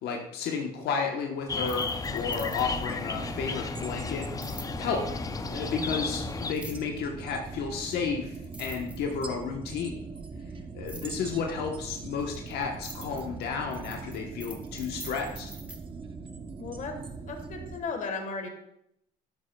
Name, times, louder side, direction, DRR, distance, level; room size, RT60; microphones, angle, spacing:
voice 1, 0.0-4.3 4.8-5.0 5.5-10.0 10.7-15.5, left 5 dB, 75° left, 2 dB, 1.1 m, -32 dB
sound 1, 1.5-6.5, left 4 dB, 20° left, 0.5 m, -34 dB
sound 2, 1.6-2.9 4.4-4.7 6.5-7.0 7.9-8.0 8.3-9.4 10.9-11.1 12.0-15.8, right 1 dB, 5° right, 1.1 m, -45 dB
sound 3, 2.0-17.8, right 4 dB, 30° right, 0.8 m, -41 dB
voice 2, 16.6-16.9 17.3-18.5, left 4 dB, 50° left, 5 dB, 1.4 m, -35 dB
11.0 x 7.6 x 2.3 m, 0.78 s
cardioid pair, 110°, 17 cm